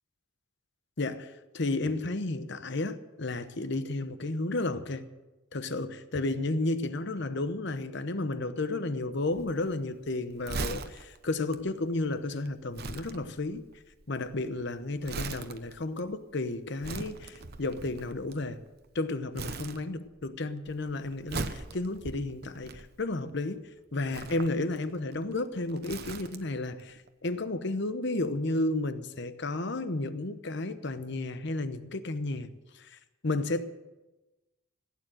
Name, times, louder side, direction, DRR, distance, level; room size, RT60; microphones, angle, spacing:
voice 1, 1.0-5.1 5.5-13.6 14.1-18.6 18.9-23.6 23.9-33.6, left 2 dB, 55° left, 0.9 m, -32 dB
Crumpling crinkling, 9.3-19.0 19.3-20.3 20.6-23.3 24.0-26.7 27.0-27.1, right 3 dB, 50° right, 0.9 m, -41 dB
16.0 x 9.2 x 7.7 m
head